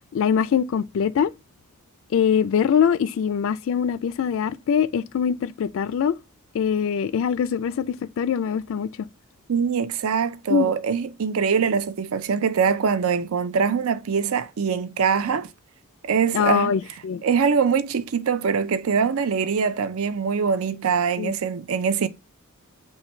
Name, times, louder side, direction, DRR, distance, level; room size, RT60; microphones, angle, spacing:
voice 1, 0.1-1.3 2.1-6.1 6.5-8.9 10.5-10.7 16.3-17.2 21.2-21.3, left 7 dB, 60° left, 0.3 m, -23 dB
voice 2, 9.5-15.5 16.0-16.7 17.2-22.1, right 6 dB, 70° right, 0.5 m, -23 dB
5.6 x 2.2 x 4.3 m
head